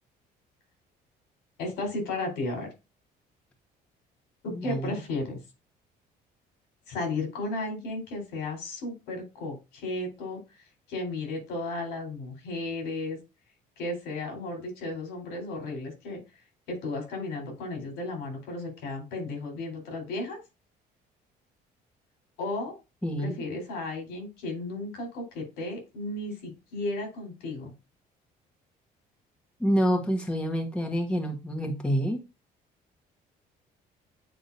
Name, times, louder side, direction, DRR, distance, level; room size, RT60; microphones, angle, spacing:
voice 1, 1.6-2.7 4.4-5.4 6.9-10.4 10.9-13.2 13.8-16.2 16.7-20.4 22.4-22.7 23.2-27.7, left 2 dB, 85° left, 4.1 m, -34 dB
voice 2, 4.5-4.9 23.0-23.4 29.6-32.2, equal, 5° left, 1.5 m, -27 dB
9.2 x 3.8 x 2.7 m
cardioid pair, 110°, 17 cm